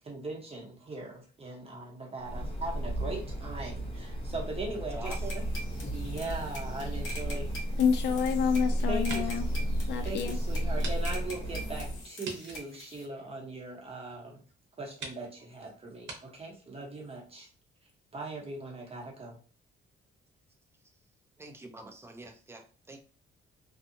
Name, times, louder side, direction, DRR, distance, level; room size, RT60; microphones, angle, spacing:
voice 1, 0.0-5.4 5.7-7.5 8.9-9.3 9.9-14.4 14.8-17.5 18.1-19.4 21.4-21.5, right 2 dB, 30° right, 1.0 m, -40 dB
sound 1, 2.2-12.0, equal, 25° left, 1.1 m, -33 dB
voice 2, 4.9-5.4 21.4-23.0, right 2 dB, 10° right, 0.6 m, -46 dB
sound 2, 5.1-13.1, equal, 80° left, 1.1 m, -45 dB
sound 3, 7.6-8.5 8.9-9.5 9.9-10.0 10.8-11.0 11.2-11.3 12.2-13.8 14.5-14.6 15.0-15.2 16.0-16.2, right 3 dB, 65° right, 0.9 m, -44 dB
voice 3, 7.8-9.4 9.9-10.4, left 7 dB, 60° left, 0.4 m, -28 dB
2.7 x 2.3 x 2.7 m
cardioid pair, 90°, 20 cm